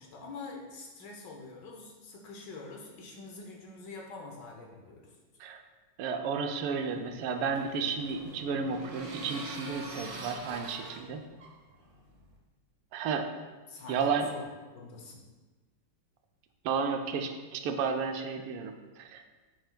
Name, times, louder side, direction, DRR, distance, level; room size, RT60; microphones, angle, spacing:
voice 1, 0.0-5.1 13.7-14.5 14.7-15.2, left 3 dB, 65° left, 0 dB, 1.2 m, -45 dB
voice 2, 6.0-11.2 12.9-13.3 13.9-14.3 16.6-19.3, right 5 dB, 85° right, 5 dB, 1.5 m, -32 dB
sound 1, 6.8-12.4, right 2 dB, 60° right, 0.7 m, -45 dB
7.6 x 5.7 x 2.2 m, 1.3 s
omnidirectional pair, 2.3 m